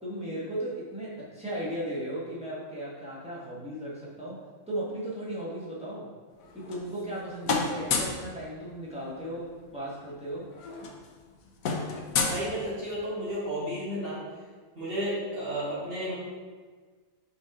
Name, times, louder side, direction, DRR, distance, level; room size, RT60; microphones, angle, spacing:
voice 1, 0.0-4.4 4.7-6.1 6.5-10.5, right 1 dB, 5° right, -7 dB, 1.4 m, -36 dB
sound 1, 6.4-7.2 7.4-8.3 9.6-9.7 10.0-10.2 10.5-13.1, left 4 dB, 80° left, 1.2 m, -31 dB
voice 2, 12.2-14.2 14.7-16.1, equal, 45° right, -8 dB, 1.6 m, -32 dB
5.7 x 4.5 x 3.7 m, 1.5 s
omnidirectional pair, 1.4 m